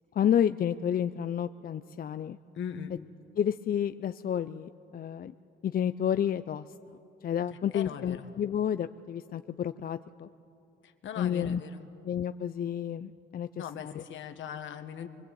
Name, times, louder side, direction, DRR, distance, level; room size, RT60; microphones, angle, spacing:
voice 1, 0.1-2.4 3.4-5.3 5.6-6.7 7.2-10.3 11.2-11.6 12.0-14.0, left 9 dB, 45° left, 11 dB, 0.5 m, -30 dB
voice 2, 2.5-2.9 7.7-8.3 10.8-11.9 13.6-15.1, left 8 dB, 75° left, 8 dB, 1.7 m, -39 dB
23.5 x 22.0 x 8.6 m, 2.7 s
cardioid pair, 90°, 20 cm